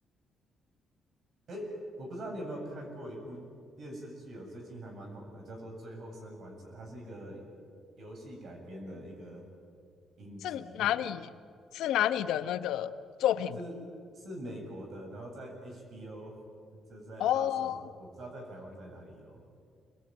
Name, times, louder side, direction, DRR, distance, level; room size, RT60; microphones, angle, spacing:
voice 1, 1.5-3.4 3.8-7.4 8.0-9.4 10.2-10.9 13.6-13.7 14.1-16.4 16.9-19.4, right 1 dB, 60° right, 2 dB, 7.8 m, -43 dB
voice 2, 10.4-11.3 11.7-12.9 13.2-13.6 17.2-17.8, left 11 dB, 85° left, 10 dB, 1.0 m, -29 dB
26.5 x 21.5 x 9.2 m, 2.3 s
cardioid pair, 90°, 0 cm